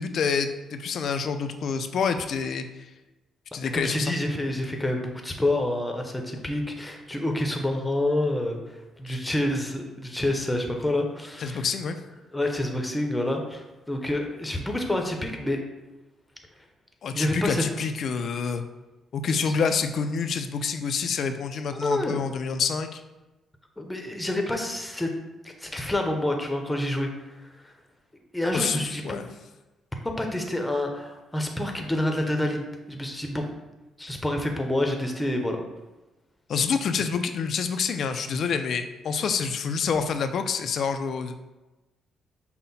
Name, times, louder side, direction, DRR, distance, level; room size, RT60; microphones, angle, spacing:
voice 1, 0.0-2.7 3.5-4.1 9.1-9.2 11.4-12.0 17.0-18.6 19.1-23.0 28.5-29.3 36.5-41.4, left 5 dB, 60° left, 8 dB, 0.4 m, -27 dB
voice 2, 3.7-8.6 9.0-11.6 12.3-15.6 17.1-17.6 19.4-19.5 21.8-22.2 23.8-25.1 25.4-27.1 27.6-27.7 28.3-29.2 30.2-33.5 34.0-35.6, left 1 dB, 10° left, 3 dB, 0.7 m, -28 dB
5.5 x 2.1 x 4.1 m, 1.1 s
cardioid pair, 90°, 0 cm